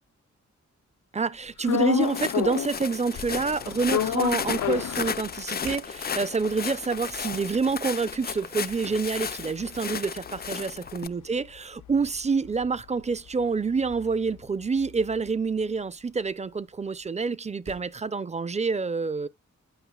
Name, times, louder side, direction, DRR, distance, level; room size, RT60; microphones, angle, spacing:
sound 1, 0.9-1.0 1.7-1.9 2.3-4.5 4.8-5.2 5.6-6.1 6.5-6.7 7.2-7.6 8.4-8.5 8.8-10.4 11.9-14.8 17.0-18.1, right 4 dB, 70° right, 4.8 m, -51 dB
voice 1, 1.1-19.3, right 4 dB, 25° right, 0.6 m, -27 dB
sound 2, 1.6-2.8 3.1-5.7 6.1-6.2 6.4-10.9 11.2-15.3, left 10 dB, 85° left, 0.5 m, -32 dB
Walk footsteps, 2.0-11.1, left 7 dB, 35° left, 0.4 m, -34 dB
11.5 x 5.3 x 2.4 m
cardioid pair, 70°, 29 cm